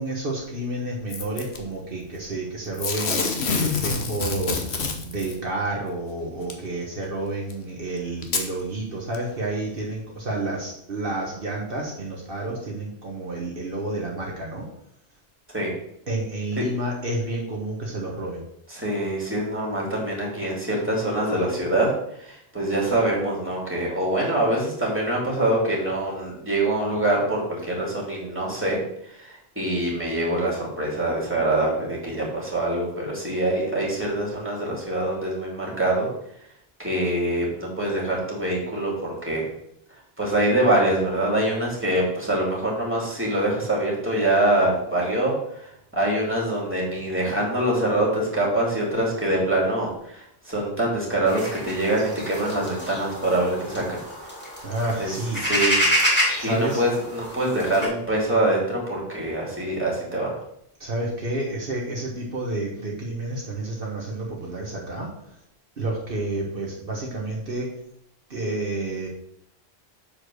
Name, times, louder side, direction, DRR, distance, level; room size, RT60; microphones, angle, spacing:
voice 1, 0.0-14.6 16.1-18.4 54.6-55.4 56.4-56.8 60.8-65.1 65.8-67.7 68.3-69.1, right 2 dB, 60° right, -2 dB, 1.6 m, -30 dB
Packing tape duct tape / Tearing, 1.1-1.6 2.8-5.3 6.5-6.6 7.5-7.6 8.2-8.5 9.1-9.2, left 5 dB, 85° left, 1.3 m, -26 dB
voice 2, 18.7-21.9 22.2-36.1 36.8-39.4 39.9-54.0 55.0-55.8 56.4-60.3, right 1 dB, 10° right, -3 dB, 2.9 m, -24 dB
sound 1, 51.3-57.9, equal, 10° left, 2.9 m, -27 dB
7.3 x 5.0 x 6.3 m, 0.73 s
omnidirectional pair, 1.1 m